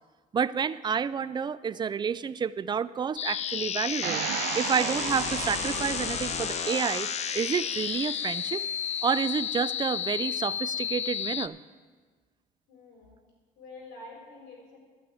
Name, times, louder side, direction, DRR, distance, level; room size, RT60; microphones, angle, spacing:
voice 1, 0.3-4.2 4.5-7.1 7.3-8.6 9.0-11.6, right 7 dB, 25° right, 16 dB, 0.4 m, -29 dB
sound 1, 3.2-11.5, left 9 dB, 40° left, 0.4 m, -32 dB
sound 2, 4.0-9.0, right 15 dB, 90° right, 0.4 m, -36 dB
voice 2, 12.7-13.2 13.5-14.8, left 2 dB, 80° left, -1 dB, 4.4 m, -47 dB
12.0 x 6.4 x 8.9 m, 1.4 s
cardioid pair, 110°, 17 cm